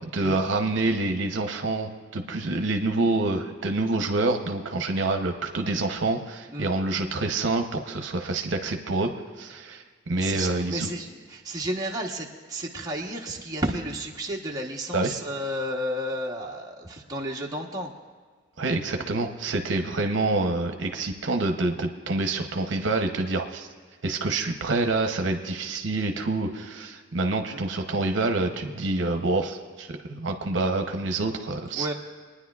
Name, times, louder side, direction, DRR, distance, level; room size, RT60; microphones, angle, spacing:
voice 1, 0.1-9.1 9.4-10.9 14.9-15.2 18.6-23.7 24.0-31.9, right 2 dB, 70° right, 5 dB, 0.8 m, -27 dB
voice 2, 10.1-17.9 27.5-27.6 31.7-31.9, equal, 20° right, -2 dB, 1.0 m, -32 dB
29.5 x 9.9 x 2.4 m, 1.5 s
head